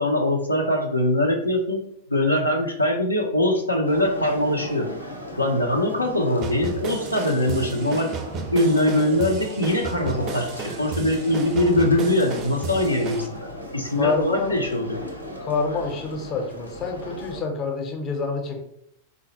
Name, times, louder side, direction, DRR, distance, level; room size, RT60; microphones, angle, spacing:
voice 1, 0.0-1.8 2.1-4.9 5.4-8.1 8.5-13.5 13.7-15.0, left 1 dB, 85° left, 1 dB, 0.4 m, -22 dB
sound 1, 3.9-17.4, left 1 dB, 90° right, 0.5 m, -37 dB
sound 2, 6.4-13.3, right 4 dB, 35° right, 0.4 m, -33 dB
voice 2, 14.0-14.5 15.4-18.6, left 4 dB, 30° left, 3 dB, 0.6 m, -27 dB
3.9 x 2.0 x 2.8 m, 0.73 s
figure-of-eight pair, 90°, 0 cm